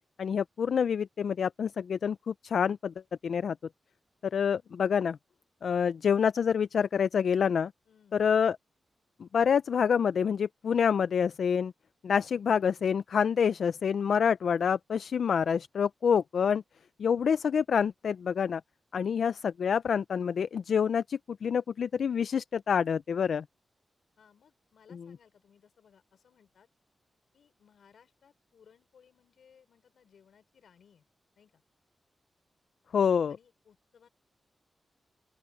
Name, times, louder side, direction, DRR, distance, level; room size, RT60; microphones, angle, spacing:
voice 1, 0.2-2.9 3.2-3.6 4.3-5.2 5.6-7.7 8.1-8.6 9.2-11.7 12.0-16.6 17.0-18.6 18.9-23.4 32.9-33.4, left 7 dB, 70° left, 0.3 m, -27 dB
voice 2, 7.9-8.3 24.2-26.7 27.3-31.0 31.4-31.6 33.3-34.1, left 7 dB, 90° left, 4.9 m, -62 dB
open air
wide cardioid pair, 175°, 0 cm